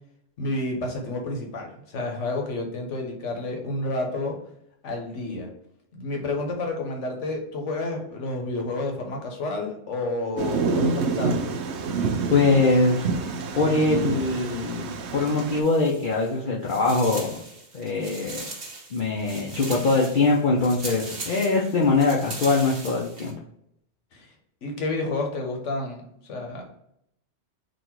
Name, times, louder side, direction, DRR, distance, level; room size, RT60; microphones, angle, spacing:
voice 1, 0.4-4.4 4.8-5.5 5.9-11.5 19.5-19.8 24.1-24.3 24.6-26.0 26.3-26.6, left 2 dB, 75° left, 2 dB, 1.3 m, -30 dB
Thunder, 10.4-15.6, right 4 dB, 70° right, 0.8 m, -27 dB
voice 2, 12.3-13.1 13.5-17.3 17.7-18.4 18.9-23.3, left 3 dB, 50° left, -3 dB, 0.7 m, -22 dB
sound 1, 15.6-16.4 16.6-23.3, right 3 dB, 55° right, 1.2 m, -39 dB
4.1 x 2.5 x 4.4 m, 0.74 s
omnidirectional pair, 1.3 m